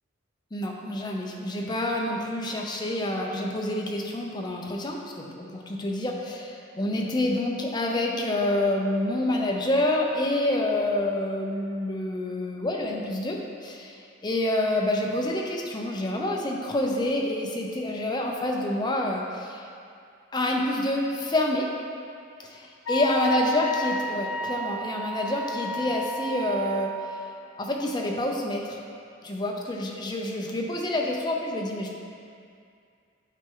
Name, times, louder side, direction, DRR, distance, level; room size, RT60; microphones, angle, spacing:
voice 1, 0.5-19.6 20.3-21.7 22.4-22.6 22.9-27.2 27.6-28.8 29.2-31.9, left 1 dB, 20° left, 0 dB, 0.6 m, -27 dB
Wind instrument woodwind instrument, 22.9-27.3, equal, 90° left, 0.7 m, -32 dB
8.3 x 4.3 x 3.8 m, 2.4 s
head